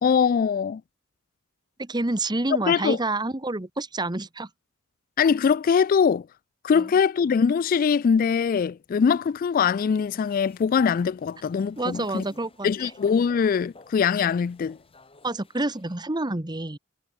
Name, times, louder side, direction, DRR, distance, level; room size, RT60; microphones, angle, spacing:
voice 1, 0.0-0.8 2.7-3.0 5.2-6.3 6.6-12.2 12.6-14.8, left 6 dB, 45° left, 0.3 m, -22 dB
voice 2, 1.8-4.5 6.7-6.9 11.8-12.7 15.2-16.8, right 2 dB, 20° right, 1.2 m, -28 dB
sound 1, 10.1-16.0, left 2 dB, 30° left, 7.4 m, -54 dB
head